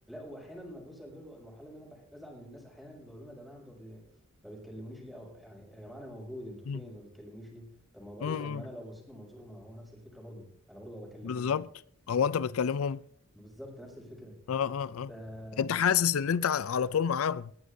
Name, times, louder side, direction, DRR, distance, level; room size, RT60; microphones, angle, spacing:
voice 1, 0.1-4.1 4.4-11.5 12.4-12.5 13.3-14.4 15.1-15.7, equal, ahead, 6.1 m, -46 dB
voice 2, 8.2-8.6 11.2-11.7 12.1-13.0 14.5-15.1 15.6-17.5, left 7 dB, 85° left, 0.4 m, -28 dB
20.5 x 14.5 x 2.7 m
head